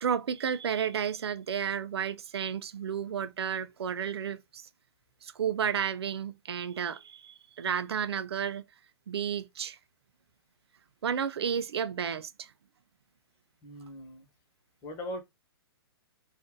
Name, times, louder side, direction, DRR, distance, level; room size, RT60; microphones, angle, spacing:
voice 1, 0.0-4.7 5.2-8.6 9.1-9.8 11.0-12.5, right 8 dB, 75° right, 0.4 m, -32 dB
voice 2, 13.6-14.3 14.8-15.2, equal, 30° left, 1.2 m, -40 dB
2.6 x 2.5 x 3.6 m
hypercardioid pair, 135°, 13 cm